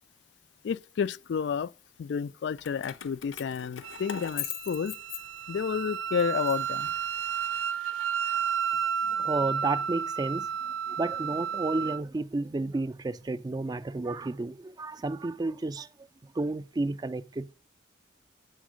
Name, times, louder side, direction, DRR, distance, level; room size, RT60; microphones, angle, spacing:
voice 1, 0.6-1.7 2.0-4.9 5.5-6.9, left 6 dB, 60° left, 0.3 m, -30 dB
Keys jangling, 2.6-5.7 6.2-7.5, left 10 dB, 85° left, 0.7 m, -40 dB
Wind instrument woodwind instrument, 3.8-12.0, right 7 dB, 80° right, 0.5 m, -32 dB
voice 2, 9.0-17.5, right 2 dB, 20° right, 0.3 m, -32 dB
8.1 x 4.4 x 6.3 m
head